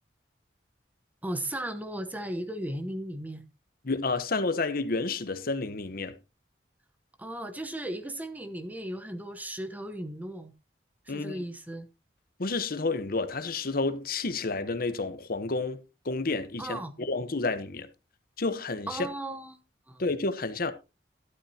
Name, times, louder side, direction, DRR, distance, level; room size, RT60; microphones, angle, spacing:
voice 1, 1.2-3.5 7.2-10.5 11.1-11.9 16.6-16.9 18.9-19.6 19.9-20.0, right 1 dB, 10° right, 1.1 m, -36 dB
voice 2, 3.8-6.2 11.1-11.4 12.4-17.9 18.4-19.1 20.0-20.7, left 3 dB, 55° left, 1.0 m, -30 dB
12.5 x 12.0 x 2.8 m
head